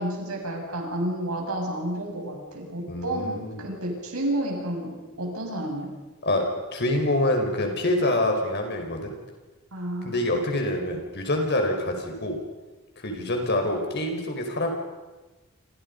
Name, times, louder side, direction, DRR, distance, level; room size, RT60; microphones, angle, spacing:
voice 1, 0.0-5.9 9.7-10.3, right 1 dB, 90° right, 1 dB, 7.4 m, -31 dB
voice 2, 2.9-3.7 6.2-6.4 6.7-9.1 10.0-12.4 13.0-14.7, left 1 dB, 50° left, 3 dB, 5.3 m, -26 dB
29.0 x 27.0 x 5.5 m, 1.2 s
head